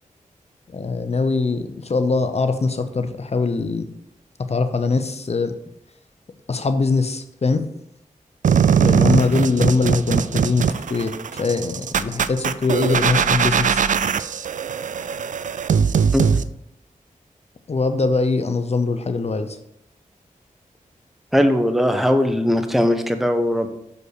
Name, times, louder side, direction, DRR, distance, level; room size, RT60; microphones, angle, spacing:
voice 1, 0.7-3.9 4.5-5.5 6.5-7.6 8.8-13.8 17.7-19.6, left 4 dB, 50° left, 9 dB, 0.7 m, -22 dB
sound 1, 8.4-16.4, right 7 dB, 65° right, 0.4 m, -20 dB
voice 2, 21.3-23.7, equal, ahead, 7 dB, 0.9 m, -19 dB
6.4 x 5.3 x 4.8 m, 0.80 s
cardioid pair, 60°, 14 cm